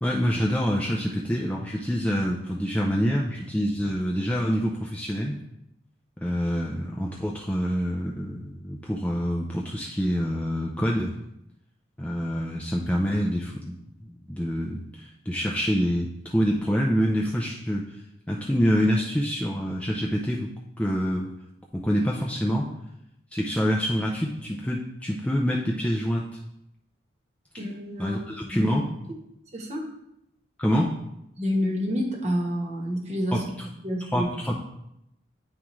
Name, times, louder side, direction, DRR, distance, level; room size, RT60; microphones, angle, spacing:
voice 1, 0.0-5.4 6.2-11.1 12.0-13.7 14.1-20.5 20.8-21.3 21.7-22.7 23.3-26.3 28.0-28.9 30.6-31.0 33.3-33.4 34.1-34.5, equal, 5° left, -2 dB, 0.4 m, -26 dB
voice 2, 27.6-28.7 29.5-29.8 31.4-33.4 33.8-34.3, equal, 35° right, 0 dB, 1.1 m, -28 dB
9.7 x 3.6 x 3.0 m, 0.82 s
head